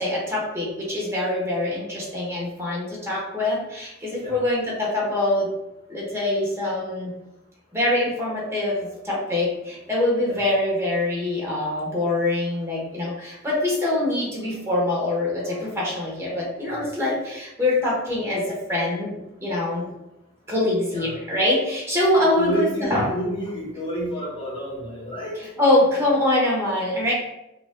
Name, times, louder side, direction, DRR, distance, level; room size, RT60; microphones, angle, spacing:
voice 1, 0.0-5.5 5.9-7.1 7.7-19.9 20.5-23.1 25.3-27.1, left 1 dB, 15° right, -5 dB, 1.1 m, -24 dB
voice 2, 22.2-25.4, right 1 dB, 25° left, -5 dB, 1.2 m, -30 dB
4.9 x 2.5 x 2.3 m, 0.90 s
head